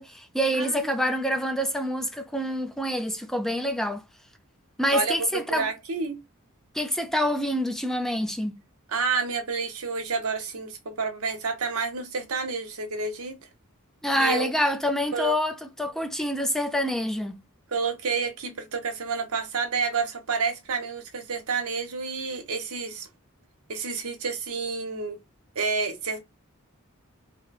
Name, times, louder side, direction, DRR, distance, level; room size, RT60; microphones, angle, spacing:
voice 1, 0.0-4.0 4.8-5.7 6.7-8.5 14.0-17.4, equal, ahead, 0.4 m, -26 dB
voice 2, 0.6-0.9 4.9-6.2 8.9-13.4 14.2-14.5 15.1-15.3 17.7-23.1 23.7-25.2 25.5-26.2, right 5 dB, 90° right, 0.9 m, -29 dB
3.0 x 2.2 x 4.0 m
head